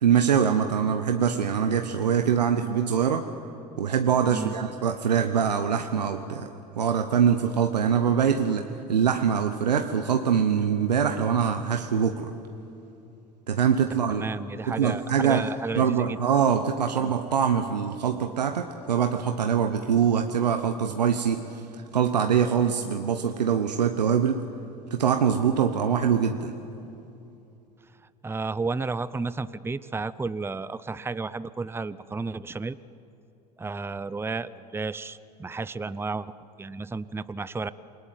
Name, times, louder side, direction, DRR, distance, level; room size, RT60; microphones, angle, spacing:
voice 1, 0.0-3.3 3.8-6.5 6.8-12.3 13.5-14.3 14.7-15.4 15.8-24.4 24.9-26.5, right 7 dB, 90° right, 6 dB, 1.0 m, -24 dB
voice 2, 14.1-16.2 17.0-17.1 28.2-32.8 33.6-36.3 36.6-37.7, right 3 dB, 10° right, 16 dB, 0.7 m, -32 dB
28.5 x 19.5 x 9.3 m, 2.8 s
hypercardioid pair, 75°, 21 cm